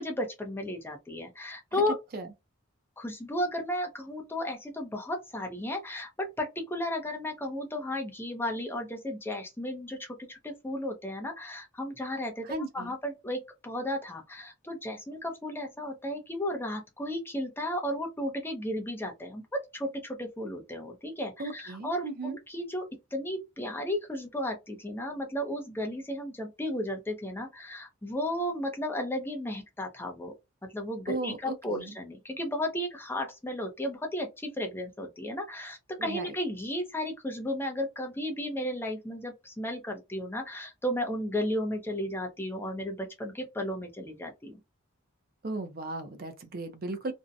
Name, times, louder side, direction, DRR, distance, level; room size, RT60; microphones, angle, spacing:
voice 1, 0.0-2.0 3.0-12.5 12.7-30.3 30.6-44.6, left 1 dB, 10° left, 0.5 m, -34 dB
voice 2, 12.4-12.9 21.4-22.4 31.1-32.0 36.0-36.3 45.4-47.1, right 2 dB, 45° right, 0.5 m, -36 dB
2.6 x 2.1 x 2.4 m
head